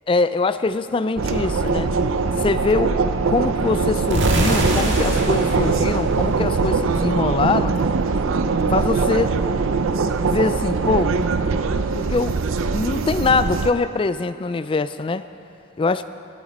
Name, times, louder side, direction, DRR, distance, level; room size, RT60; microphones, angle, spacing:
voice 1, 0.1-1.9 2.4-3.0 3.3-7.8 8.7-9.3 10.1-11.2 11.9-12.4 12.7-15.3 15.8-16.0, left 3 dB, 25° left, 13 dB, 0.3 m, -23 dB
sound 1, 1.2-13.7, right 4 dB, 80° right, 0.5 m, -22 dB
sound 2, 4.1-7.0, right 1 dB, 60° right, 1.8 m, -24 dB
21.5 x 8.9 x 4.2 m, 2.7 s
head